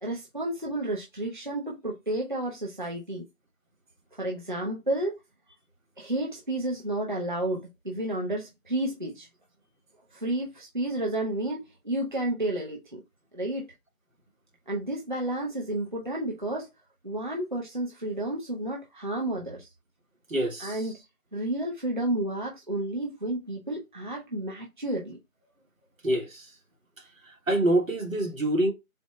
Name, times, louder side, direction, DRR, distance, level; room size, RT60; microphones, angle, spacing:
voice 1, 0.0-3.2 4.2-5.2 6.0-9.3 10.1-13.0 13.3-13.7 14.7-16.7 17.0-19.7 20.6-20.9 21.3-25.2, right 1 dB, 35° right, 0.6 m, -31 dB
voice 2, 20.3-20.8 26.0-26.4 27.5-28.7, right 1 dB, 65° right, 1.4 m, -25 dB
4.2 x 2.0 x 4.2 m
figure-of-eight pair, 160°, 43 cm